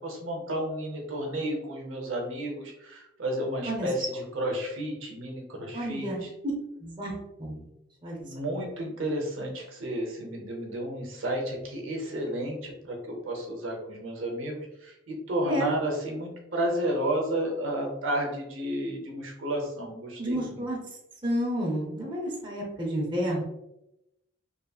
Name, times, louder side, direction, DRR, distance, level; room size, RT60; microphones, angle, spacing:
voice 1, 0.0-6.3 8.2-20.6, right 1 dB, 70° right, 0 dB, 0.7 m, -32 dB
voice 2, 5.7-6.2 6.8-7.1 7.4-7.7 8.0-8.2 15.4-15.7 20.2-20.8 21.2-23.4, equal, 20° right, -3 dB, 0.6 m, -30 dB
2.7 x 2.7 x 2.3 m, 0.87 s
head